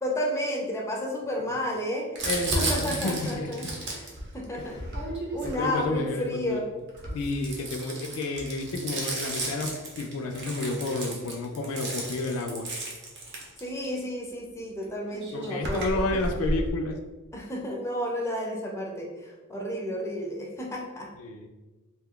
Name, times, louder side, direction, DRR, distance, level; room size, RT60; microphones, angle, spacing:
voice 1, 0.0-2.3 2.6-4.8 5.3-6.7 13.6-16.0 17.3-21.1, equal, 15° left, -1 dB, 0.4 m, -32 dB
voice 2, 2.2-3.5 4.5-4.7 5.4-6.6 7.1-12.7 15.3-17.0 21.2-21.5, left 2 dB, 75° left, 4 dB, 0.4 m, -31 dB
Crumpling crinkling, 2.2-6.2 6.9-14.0 14.8-14.9 15.1-16.7, right 1 dB, 55° right, 0.7 m, -33 dB
2.6 x 2.3 x 3.6 m, 1.2 s
head